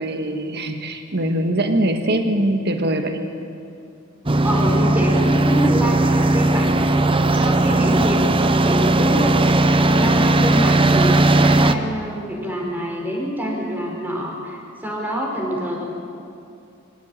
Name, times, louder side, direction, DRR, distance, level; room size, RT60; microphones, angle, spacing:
voice 1, 0.0-3.2, right 1 dB, 50° right, 6 dB, 1.7 m, -22 dB
sound 1, 4.3-11.7, right 2 dB, 25° right, 0.8 m, -17 dB
voice 2, 4.4-9.4 9.8-15.8, equal, 10° right, -1 dB, 5.0 m, -26 dB
25.5 x 16.5 x 9.0 m, 2.5 s
head